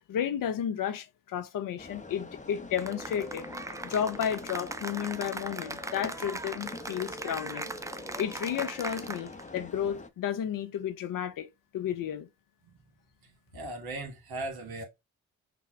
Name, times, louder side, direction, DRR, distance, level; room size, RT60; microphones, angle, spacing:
voice 1, 0.1-3.5 3.8-7.7 8.2-12.3, left 9 dB, 60° left, 0.6 m, -32 dB
sound 1, 1.8-10.1, left 3 dB, 20° left, 0.8 m, -45 dB
Cheering / Applause, 2.8-9.5, right 2 dB, 10° right, 0.4 m, -39 dB
voice 2, 13.2-14.8, right 2 dB, 75° right, 1.7 m, -38 dB
5.9 x 2.1 x 3.0 m
hypercardioid pair, 45°, 38 cm